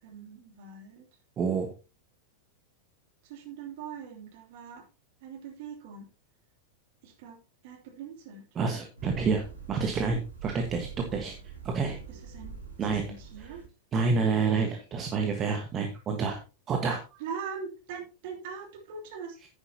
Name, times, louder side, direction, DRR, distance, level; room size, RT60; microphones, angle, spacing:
voice 1, 0.0-1.1 3.2-4.9 5.2-6.1 7.0-7.4 7.6-8.5 12.1-13.6 17.2-19.4, right 6 dB, 50° right, 3 dB, 2.8 m, -42 dB
voice 2, 1.4-1.7 8.5-11.3 11.6-12.0 12.8-13.1 13.9-16.4 16.7-17.0, right 4 dB, 25° right, 4 dB, 1.4 m, -28 dB
sound 1, 9.0-13.7, right 6 dB, 80° right, 3.0 m, -44 dB
10.0 x 9.7 x 2.8 m, 0.31 s
figure-of-eight pair, 90°, 0 cm